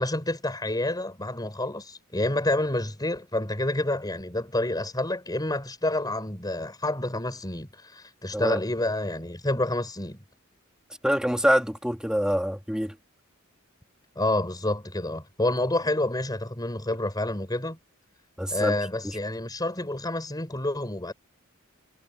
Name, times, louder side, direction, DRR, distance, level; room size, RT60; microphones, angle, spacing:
voice 1, 0.0-10.2 14.2-17.8 18.5-21.1, left 1 dB, 20° left, 5.4 m, -28 dB
voice 2, 11.0-12.9 18.4-18.8, equal, 5° right, 3.5 m, -25 dB
head